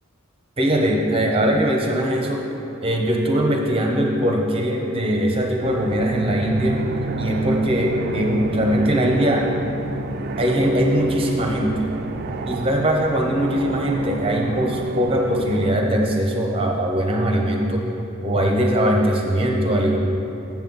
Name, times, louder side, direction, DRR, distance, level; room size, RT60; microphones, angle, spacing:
voice 1, 0.6-2.5 2.8-6.8 7.2-9.5 10.4-11.9 12.5-17.9 18.2-20.0, equal, 25° right, 0 dB, 0.7 m, -21 dB
sound 1, 5.6-15.7, right 3 dB, 45° right, 0.3 m, -30 dB
7.5 x 7.4 x 3.9 m, 2.9 s
head